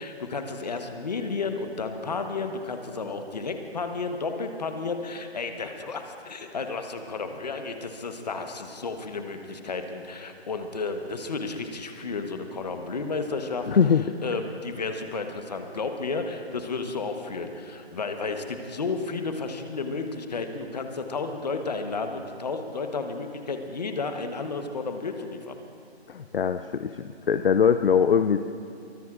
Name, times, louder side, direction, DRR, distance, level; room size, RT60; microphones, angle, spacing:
voice 1, 0.0-13.7 14.2-25.6, left 4 dB, 40° left, 6 dB, 1.1 m, -32 dB
voice 2, 13.7-14.1 26.1-28.4, left 7 dB, 60° left, 10 dB, 0.5 m, -22 dB
23.5 x 19.0 x 2.5 m, 2.5 s
figure-of-eight pair, 165°, 33 cm